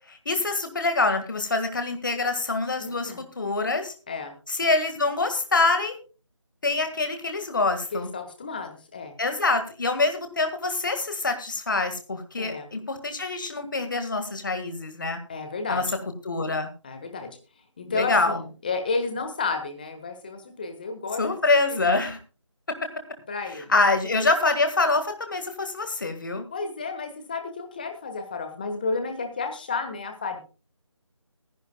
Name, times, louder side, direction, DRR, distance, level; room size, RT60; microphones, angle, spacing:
voice 1, 0.1-3.9 4.5-5.9 6.6-8.1 9.2-15.2 15.7-15.8 16.2-16.7 17.9-18.4 21.2-22.2 23.5-26.5, left 3 dB, 40° left, 7 dB, 1.8 m, -25 dB
voice 2, 2.8-3.2 4.1-4.3 7.9-9.1 12.4-12.7 15.3-15.8 16.8-17.4 17.8-21.2 21.7-21.8 23.3-23.7 26.5-30.4, left 4 dB, 15° left, 6 dB, 1.4 m, -32 dB
21.0 x 11.0 x 2.3 m, 0.35 s
figure-of-eight pair, 165°, 16 cm